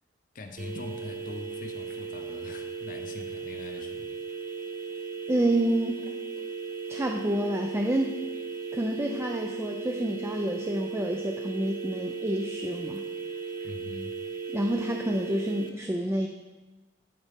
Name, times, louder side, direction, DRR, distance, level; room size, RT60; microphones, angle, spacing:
voice 1, 0.3-4.1 13.6-14.2, left 2 dB, 45° left, 5 dB, 0.6 m, -42 dB
sound 1, 0.6-15.7, right 4 dB, 50° right, 0.7 m, -36 dB
voice 2, 5.3-6.0 6.9-8.2 8.7-13.0 14.5-16.3, right 1 dB, 15° right, 2 dB, 0.4 m, -28 dB
12.0 x 4.0 x 3.6 m, 1.2 s
head